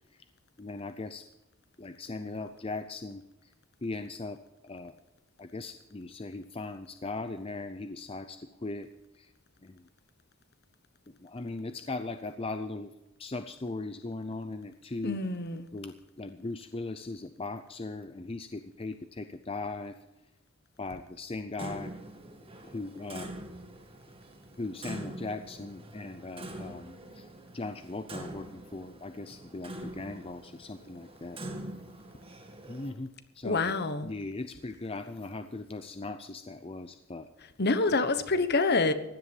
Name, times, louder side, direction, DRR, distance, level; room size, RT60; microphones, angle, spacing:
voice 1, 0.6-1.2 1.8-3.2 3.8-4.4 4.6-4.9 5.4-8.9 9.6-9.7 11.2-12.9 13.2-15.2 15.7-20.0 20.8-21.9 22.7-23.3 24.6-27.2 27.5-28.5 28.7-31.4 32.7-33.1 33.4-33.6 34.0-37.3, left 3 dB, 25° left, 0.6 m, -38 dB
voice 2, 15.0-15.7 33.4-34.1 37.6-38.9, left 3 dB, 50° left, 1.1 m, -27 dB
Clock, 21.6-32.9, right 1 dB, 25° right, 2.0 m, -44 dB
16.5 x 11.0 x 5.4 m
head